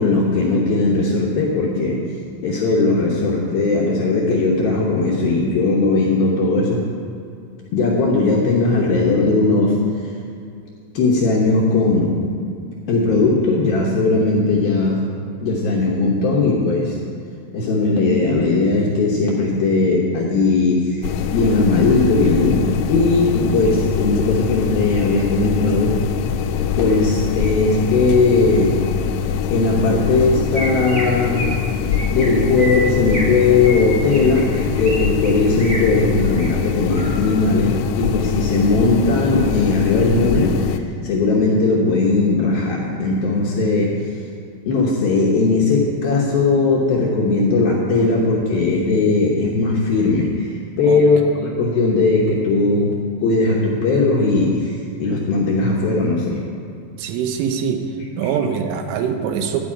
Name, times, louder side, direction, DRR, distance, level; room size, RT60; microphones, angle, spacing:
voice 1, 0.0-2.0 2.4-6.8 7.7-9.8 10.9-12.2 12.9-15.0 15.4-17.0 17.5-26.0 26.7-28.8 29.5-31.5 32.1-44.0 44.6-52.9 53.2-56.4, left 3 dB, 70° left, -3 dB, 2.4 m, -18 dB
sound 1, 21.0-40.8, left 7 dB, 90° left, 3.2 m, -23 dB
Chirp tweet, 30.5-31.0 31.3-31.6 31.9-32.3 32.6-33.3 33.6-35.0 35.2-35.8 36.2-36.5 36.9-37.3, equal, 30° right, 1.0 m, -29 dB
voice 2, 57.0-57.8 58.2-59.6, right 7 dB, 85° right, 6 dB, 3.4 m, -23 dB
12.5 x 5.4 x 8.6 m, 2.5 s
omnidirectional pair, 5.6 m